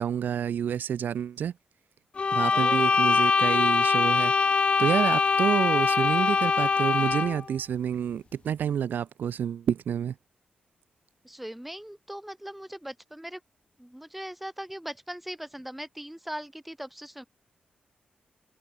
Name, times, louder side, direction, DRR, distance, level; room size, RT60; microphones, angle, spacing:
voice 1, 0.0-1.5 2.3-10.1, right 8 dB, 75° right, 0.7 m, -29 dB
sound 1, 2.2-7.4, left 5 dB, 35° left, 0.5 m, -23 dB
voice 2, 2.5-2.9 11.2-13.4 13.8-17.2, equal, 5° right, 1.8 m, -40 dB
wide cardioid pair, 140°, 3 cm